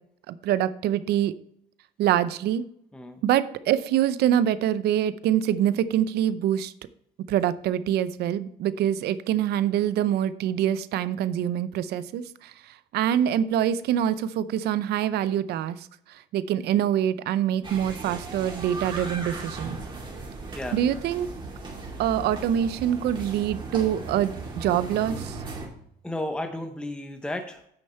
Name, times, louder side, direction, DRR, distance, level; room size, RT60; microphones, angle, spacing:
voice 1, 0.3-1.3 2.0-2.6 3.2-6.7 7.3-19.8 20.7-21.3 22.0-25.4, right 10 dB, 75° right, 15 dB, 0.6 m, -25 dB
sound 1, 17.6-25.7, right 3 dB, 30° right, 2.7 m, -37 dB
voice 2, 26.0-27.6, left 1 dB, 5° left, 5 dB, 0.8 m, -33 dB
9.2 x 6.4 x 4.4 m, 0.71 s
cardioid pair, 110°, 17 cm